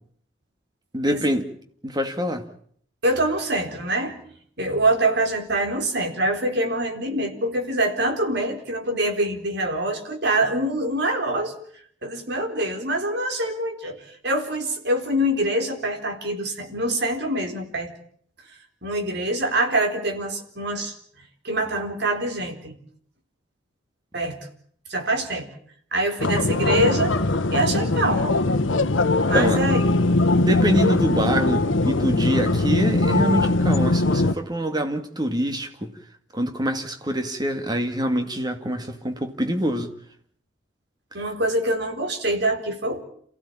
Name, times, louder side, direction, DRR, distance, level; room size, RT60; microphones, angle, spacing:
voice 1, 0.9-1.5 1.8-2.4 29.3-29.6 30.4-35.9 36.3-39.9, equal, 20° right, 2.2 m, -25 dB
voice 2, 3.0-4.2 4.6-11.6 12.0-17.9 18.8-20.9 21.4-22.8 24.1-24.4 24.9-25.5 25.9-27.1 27.5-28.4 29.3-29.8 41.1-43.0, right 1 dB, 60° right, 4.1 m, -25 dB
sound 1, 26.2-34.3, left 2 dB, 80° left, 1.2 m, -21 dB
28.5 x 16.0 x 8.8 m
head